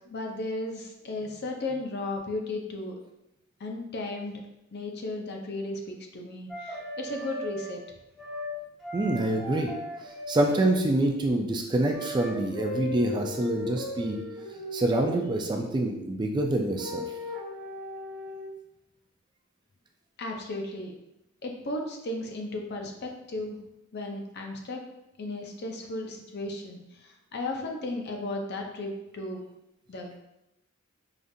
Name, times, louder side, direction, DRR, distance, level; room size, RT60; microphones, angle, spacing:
voice 1, 0.1-2.9 3.6-4.3 4.7-7.8 20.2-20.9 21.4-23.6 23.9-24.8 25.2-29.4 29.9-30.2, left 2 dB, 50° left, 2 dB, 0.6 m, -35 dB
sound 1, 6.5-7.8 8.2-8.5 8.8-10.7 11.9-15.3 16.7-18.5, left 1 dB, ahead, 1.2 m, -38 dB
voice 2, 8.9-9.7 10.3-14.2 14.7-17.0, right 1 dB, 20° right, 1 dB, 0.3 m, -26 dB
5.0 x 2.5 x 2.6 m, 0.89 s
head